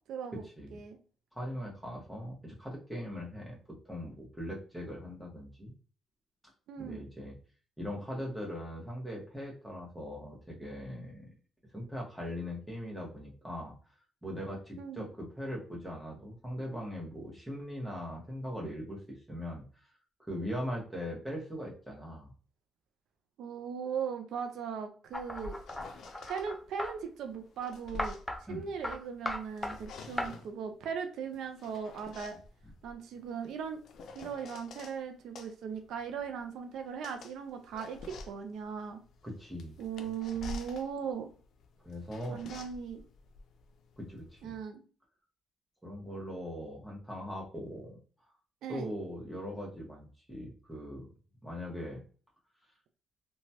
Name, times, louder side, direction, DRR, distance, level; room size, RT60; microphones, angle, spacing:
voice 1, 0.1-0.4 0.7-1.0 6.7-7.0 14.8-15.1 23.4-25.6 26.2-28.2 28.5-32.4 32.8-33.8 34.1-39.0 39.8-41.3 42.3-43.0 44.4-44.8 48.6-48.9, right 7 dB, 80° right, 6 dB, 0.4 m, -38 dB
voice 2, 1.3-3.6 3.8-5.7 6.8-7.3 7.8-11.3 11.7-13.7 14.2-19.9 20.2-22.3 28.5-28.7 39.2-39.8 41.8-42.4 44.0-44.5 45.8-48.0 48.7-51.1 51.4-52.0, equal, ahead, -3 dB, 1.1 m, -40 dB
sound 1, 25.1-26.5 27.3-29.1 29.4-30.6 31.3-35.0 35.3-44.4, left 3 dB, 70° left, 0.4 m, -49 dB
sound 2, 25.1-26.9 28.0-28.4 28.8-29.0 29.3-29.8 30.2-30.3, left 1 dB, 15° left, 0.6 m, -36 dB
2.9 x 2.2 x 2.7 m, 0.40 s
cardioid pair, 90°, 0 cm